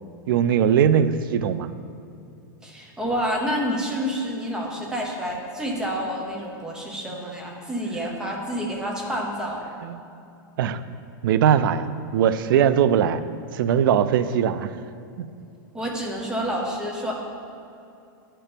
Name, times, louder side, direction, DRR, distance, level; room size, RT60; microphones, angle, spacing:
voice 1, 0.3-1.7 9.8-10.0 10.6-10.8 11.2-13.2 13.5-14.7 15.2-15.3, right 8 dB, 70° right, 12 dB, 0.4 m, -20 dB
voice 2, 2.6-9.6 15.7-17.1, equal, 5° right, -1 dB, 0.9 m, -28 dB
9.8 x 4.4 x 5.1 m, 2.7 s
supercardioid pair, 160°, 12 cm